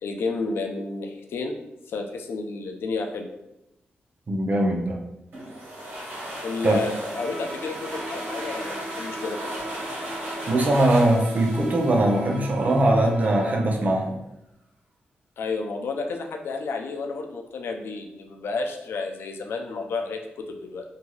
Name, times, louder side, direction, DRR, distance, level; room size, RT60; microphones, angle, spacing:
voice 1, 0.0-1.5 1.9-3.3 6.4-9.5 15.4-20.8, left 4 dB, 85° left, 4 dB, 0.4 m, -31 dB
voice 2, 4.3-5.0 6.6-6.9 10.5-14.2, right 1 dB, 45° right, 2 dB, 0.5 m, -21 dB
sound 1, 5.3-12.8, right 1 dB, 70° right, 1.2 m, -37 dB
Bowed string instrument, 7.1-13.8, equal, ahead, 1.2 m, -38 dB
2.6 x 2.3 x 3.1 m, 0.87 s
cardioid pair, 90°, 4 cm